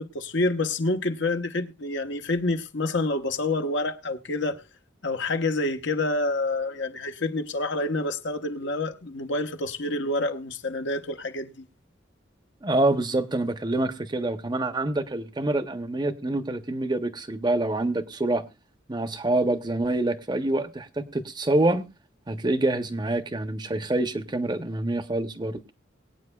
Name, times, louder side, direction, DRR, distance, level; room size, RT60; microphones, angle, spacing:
voice 1, 0.0-4.6 5.0-11.5, left 2 dB, 70° left, 1.0 m, -28 dB
voice 2, 12.6-18.4 18.9-21.9 22.3-25.6, right 2 dB, 25° right, 0.7 m, -26 dB
22.5 x 9.0 x 2.3 m
head